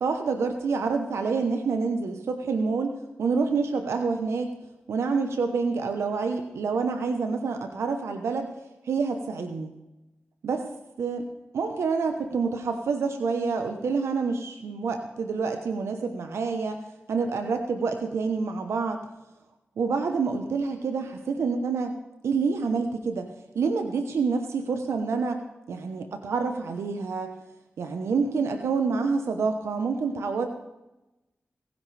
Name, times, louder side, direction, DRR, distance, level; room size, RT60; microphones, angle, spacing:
voice 1, 0.0-4.5 4.9-8.5 8.8-9.7 10.4-10.7 11.0-11.2 11.5-16.8 17.1-19.0 19.8-21.9 22.2-23.3 23.5-25.4 25.7-27.3 27.8-30.5, right 4 dB, 90° right, 6 dB, 1.0 m, -27 dB
27.0 x 10.5 x 3.4 m, 0.99 s
cardioid pair, 40°, 4 cm